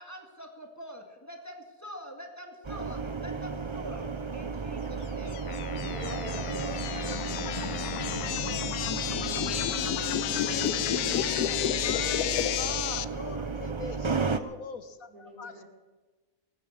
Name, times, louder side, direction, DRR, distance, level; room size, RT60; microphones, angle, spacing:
voice 1, 0.0-4.1 4.3-7.3 7.6-8.8, equal, 10° left, 3 dB, 2.2 m, -45 dB
sound 1, 2.6-14.4, right 4 dB, 25° right, 0.7 m, -34 dB
sound 2, 5.3-13.0, left 12 dB, 85° left, 1.2 m, -31 dB
sound 3, 5.5-8.5, left 6 dB, 30° left, 0.6 m, -41 dB
voice 2, 5.8-6.5 9.0-9.9 10.2-10.9 15.1-15.6, right 2 dB, 80° right, 1 dB, 4.8 m, -45 dB
voice 3, 8.4-8.7 10.3-10.7 11.1-15.6, left 5 dB, 70° left, 10 dB, 1.7 m, -42 dB
19.5 x 9.5 x 7.9 m, 1.2 s
omnidirectional pair, 1.6 m